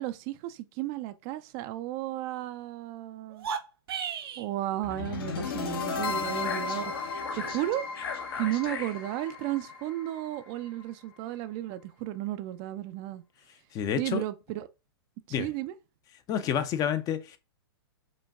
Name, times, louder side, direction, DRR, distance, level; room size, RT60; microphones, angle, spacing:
voice 1, 0.0-3.5 4.4-7.9 8.4-13.2 14.0-14.7 15.4-15.7, right 15 dB, 35° right, 0.4 m, -34 dB
sound 1, 3.3-4.5, right 7 dB, 70° right, 0.7 m, -34 dB
sound 2, 4.8-10.9, left 5 dB, 65° left, 1.0 m, -34 dB
voice 2, 13.7-14.2 15.3-15.5 16.3-17.4, left 9 dB, 30° left, 0.5 m, -29 dB
5.2 x 2.2 x 3.5 m
hypercardioid pair, 120°, 13 cm